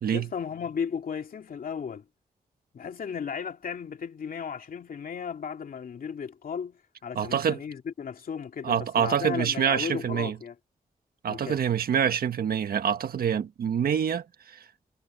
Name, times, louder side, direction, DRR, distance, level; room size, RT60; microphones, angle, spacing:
voice 1, 0.1-2.0 2.7-10.5 11.3-11.6, left 7 dB, 70° left, 2.7 m, -35 dB
voice 2, 7.1-7.6 8.6-10.4 11.2-14.6, right 8 dB, 85° right, 1.5 m, -26 dB
cardioid pair, 85°, 15 cm